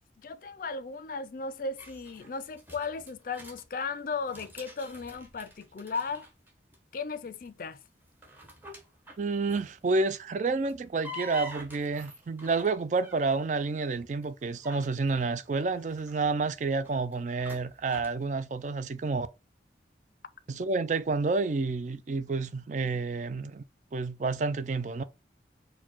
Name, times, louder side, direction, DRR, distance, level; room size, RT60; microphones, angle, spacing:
voice 1, 0.2-6.3 6.9-7.8, left 4 dB, 50° left, 0.4 m, -36 dB
sound 1, 1.8-3.6 4.1-6.8 7.0-7.5 8.0-9.8 10.5-13.4 14.0-18.2, equal, 10° right, 0.9 m, -47 dB
voice 2, 9.2-19.3 20.5-23.6 23.9-25.0, right 3 dB, 45° right, 0.4 m, -29 dB
4.4 x 2.2 x 4.3 m
head